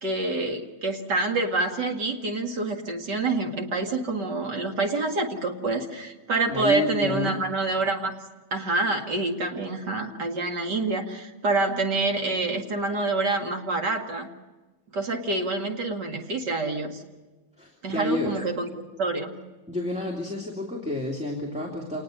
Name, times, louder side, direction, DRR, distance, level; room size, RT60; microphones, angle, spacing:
voice 1, 0.0-8.1 8.5-14.3 14.9-17.0 17.8-19.3, right 3 dB, 50° right, 3 dB, 2.7 m, -27 dB
voice 2, 6.5-7.3 17.6-18.4 19.7-22.0, left 1 dB, 5° right, -1 dB, 2.7 m, -30 dB
27.5 x 20.0 x 6.7 m, 1.2 s
omnidirectional pair, 2.4 m